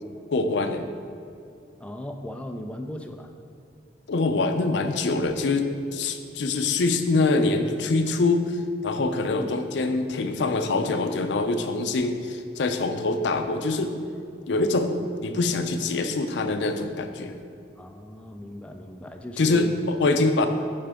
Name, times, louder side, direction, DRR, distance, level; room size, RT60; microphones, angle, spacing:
voice 1, 0.3-0.9 4.1-8.6 8.8-13.9 14.5-17.4 19.4-20.5, left 3 dB, 80° left, 7 dB, 0.5 m, -24 dB
voice 2, 1.8-3.3 9.4-9.6 17.8-19.7 20.4-20.5, left 1 dB, 5° left, 5 dB, 0.3 m, -37 dB
8.6 x 4.4 x 3.5 m, 2.5 s
head